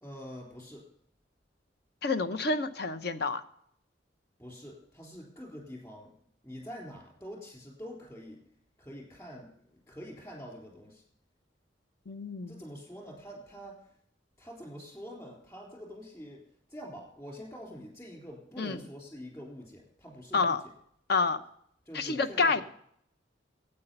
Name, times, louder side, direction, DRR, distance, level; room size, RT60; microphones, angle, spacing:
voice 1, 0.0-0.8 4.4-6.1 6.4-8.4 8.8-9.5 9.9-11.0 12.5-13.8 14.4-16.4 16.7-20.6 21.9-22.6, equal, 15° left, -1 dB, 3.7 m, -45 dB
voice 2, 2.0-3.4 12.1-12.6 18.6-18.8 20.3-20.6 21.1-21.4 21.9-22.6, left 4 dB, 60° left, 10 dB, 0.9 m, -28 dB
12.0 x 8.9 x 5.6 m, 0.67 s
head